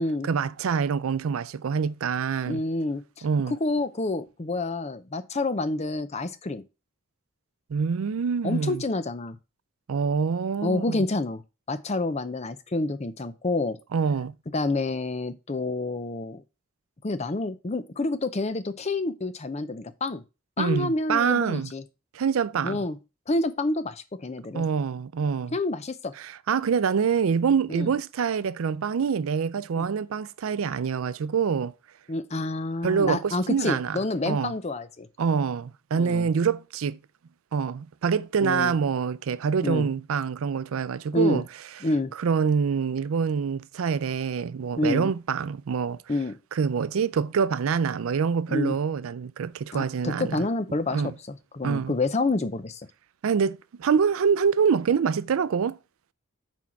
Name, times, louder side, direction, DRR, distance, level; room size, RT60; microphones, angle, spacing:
voice 1, 0.2-2.6 3.2-3.5 7.7-8.8 9.9-11.1 13.9-14.3 20.6-21.7 22.1-22.8 24.5-25.6 26.2-31.7 32.8-34.0 34.2-34.5 35.2-37.0 37.5-41.4 42.2-46.0 46.5-50.5 50.9-51.1 51.6-51.9 53.2-55.8, right 6 dB, 70° right, 0.4 m, -25 dB
voice 2, 2.5-6.6 8.4-9.4 10.6-11.4 11.7-13.8 14.5-16.4 17.0-20.2 20.6-21.8 22.6-23.0 23.3-24.7 25.5-26.1 27.7-27.9 29.8-29.9 32.1-35.1 35.9-36.3 38.4-38.7 39.6-39.9 41.1-41.4 41.8-42.1 44.8-45.1 46.1-46.3 48.5-48.7 49.7-51.1 51.5-52.8, left 2 dB, 30° left, 0.6 m, -28 dB
6.2 x 4.6 x 5.8 m
head